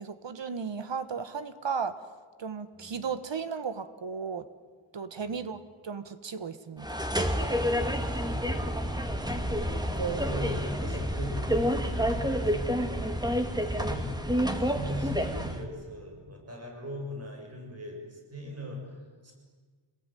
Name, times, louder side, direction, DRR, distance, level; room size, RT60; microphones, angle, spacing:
voice 1, 0.0-2.0 2.4-4.5 4.9-6.9 9.7-10.4, right 6 dB, 60° right, 11 dB, 1.5 m, -35 dB
sound 1, 6.8-15.6, equal, 10° right, 2.1 m, -29 dB
voice 2, 8.0-9.5 10.2-14.1 14.6-19.4, equal, 30° right, 1 dB, 7.3 m, -40 dB
26.5 x 21.0 x 9.2 m, 1.5 s
wide cardioid pair, 135°, 49 cm